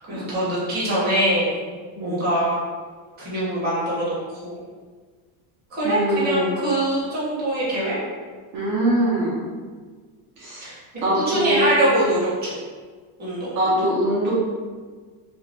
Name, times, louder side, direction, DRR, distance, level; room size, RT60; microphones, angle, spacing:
voice 1, 0.1-1.6 2.0-2.6 3.2-4.1 4.4-4.6 5.7-8.0 10.6-10.7 11.2-12.5 13.2-13.6, right 1 dB, 20° right, -9 dB, 0.9 m, -23 dB
voice 2, 5.8-6.5 8.5-9.5 10.4-10.7 11.0-11.8 13.5-14.3, equal, 50° right, -8 dB, 0.7 m, -23 dB
2.5 x 2.1 x 3.2 m, 1.5 s
cardioid pair, 170°, 47 cm